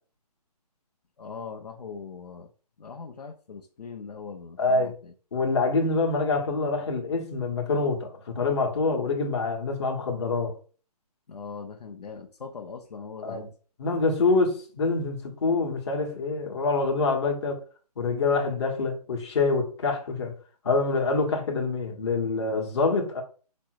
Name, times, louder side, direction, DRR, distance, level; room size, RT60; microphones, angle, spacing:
voice 1, 1.2-2.5 2.8-5.1 11.3-13.5, left 5 dB, 75° left, 0.8 m, -40 dB
voice 2, 4.6-4.9 5.3-10.6 13.2-13.4 13.8-17.6 18.0-20.3 20.6-23.2, left 3 dB, 40° left, 1.2 m, -26 dB
5.3 x 2.1 x 4.6 m
hypercardioid pair, 165°, 21 cm